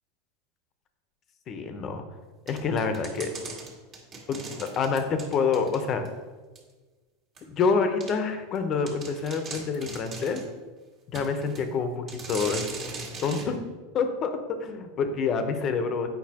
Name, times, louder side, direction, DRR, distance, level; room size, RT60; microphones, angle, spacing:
voice 1, 1.5-2.0 2.5-3.3 4.3-6.1 7.5-10.4 11.1-12.7 13.2-13.6 13.9-16.1, left 5 dB, 35° left, 7 dB, 0.8 m, -27 dB
sound 1, 2.5-6.1 6.5-6.6 7.4-7.5 8.0-8.1 8.5-8.6 8.9-10.5 11.1-11.7 12.1-13.5, right 3 dB, 35° right, 1.7 m, -39 dB
8.2 x 5.6 x 2.9 m, 1.3 s
supercardioid pair, 125°, 0 cm